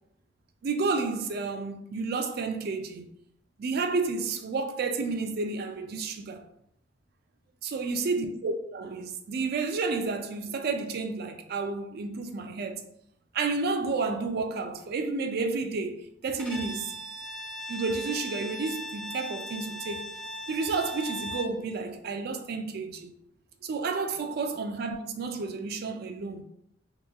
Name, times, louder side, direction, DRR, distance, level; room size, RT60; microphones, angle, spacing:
voice 1, 0.6-3.1 3.6-6.4 7.6-12.8 13.3-16.9 17.7-20.1 20.5-23.1 23.6-26.4, right 4 dB, 55° right, 0.4 m, -31 dB
Bowed string instrument, 16.4-21.6, equal, 5° left, 0.8 m, -38 dB
3.4 x 2.9 x 2.2 m
head